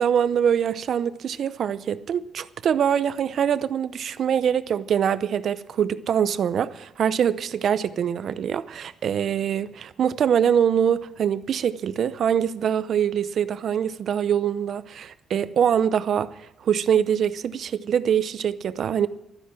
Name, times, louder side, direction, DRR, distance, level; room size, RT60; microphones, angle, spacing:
voice 1, 0.0-16.3 16.6-19.1, right 8 dB, 60° right, 0.7 m, -24 dB
12.5 x 10.5 x 7.5 m
cardioid pair, 90°, 0 cm